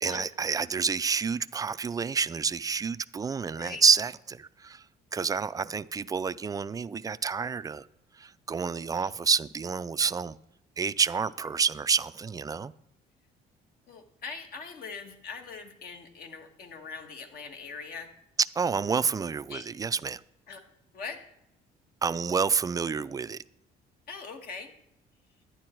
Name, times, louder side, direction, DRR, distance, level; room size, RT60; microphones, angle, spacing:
voice 1, 0.0-4.8 5.1-7.9 8.2-10.4 10.8-12.7 18.6-20.2 22.0-23.4, right 5 dB, 20° right, 0.3 m, -28 dB
voice 2, 13.9-18.1 19.5-19.7 20.5-20.6 20.9-21.2 24.1-24.7, left 5 dB, 60° left, 1.7 m, -41 dB
11.5 x 9.6 x 4.5 m
cardioid pair, 110°, 17 cm